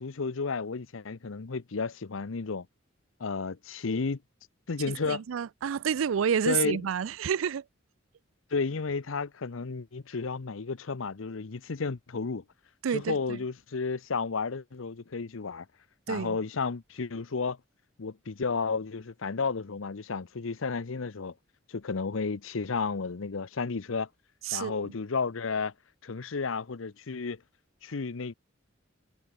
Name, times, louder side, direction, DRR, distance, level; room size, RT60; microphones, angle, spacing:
voice 1, 0.0-2.7 3.2-4.2 4.7-5.2 6.5-6.8 8.5-12.4 12.9-15.7 16.1-17.6 18.0-21.3 21.7-24.1 24.5-25.7 26.0-27.4 27.8-28.3, left 4 dB, 80° left, 0.7 m, -32 dB
voice 2, 5.0-7.6 12.8-13.4 16.1-16.4 24.4-24.9, right 7 dB, 80° right, 0.4 m, -29 dB
head